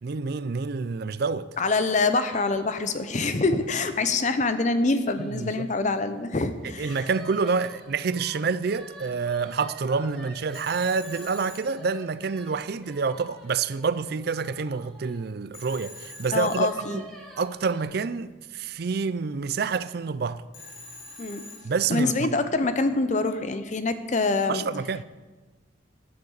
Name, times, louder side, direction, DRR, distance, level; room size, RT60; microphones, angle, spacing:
voice 1, 0.0-1.5 5.2-5.7 6.8-17.0 17.4-20.4 21.6-22.3 24.5-25.0, right 5 dB, 50° right, 0.4 m, -28 dB
voice 2, 1.6-7.0 16.3-17.0 21.2-21.5 21.9-24.6, left 3 dB, 35° left, 0.7 m, -25 dB
Are You Happy Original Song, 2.1-6.2 6.8-15.2 16.4-17.8, right 1 dB, 5° left, 2.0 m, -48 dB
Telephone, 10.5-12.5 15.5-17.3 20.5-22.2, left 2 dB, 80° left, 4.3 m, -45 dB
15.5 x 11.0 x 4.0 m
head